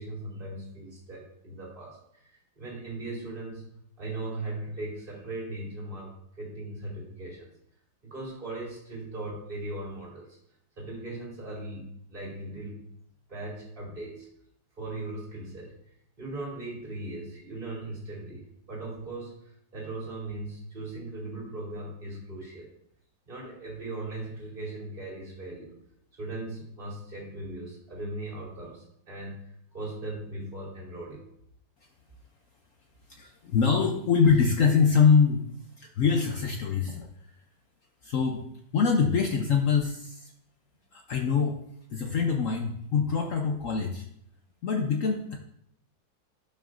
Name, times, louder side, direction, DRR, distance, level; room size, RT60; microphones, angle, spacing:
voice 1, 0.0-2.0 2.6-3.7 4.0-6.1 6.4-7.5 8.0-10.3 10.8-12.8 13.3-14.3 14.8-15.7 16.2-19.3 19.7-22.7 23.3-25.7 26.2-29.4 29.7-31.2, right 2 dB, 25° right, -5 dB, 2.6 m, -38 dB
voice 2, 33.1-35.4 35.8-37.1 38.0-38.4 38.7-40.3 40.9-41.6 41.9-44.0 44.6-45.4, left 6 dB, 75° left, 3 dB, 0.7 m, -24 dB
11.5 x 5.6 x 2.5 m, 0.72 s
omnidirectional pair, 2.2 m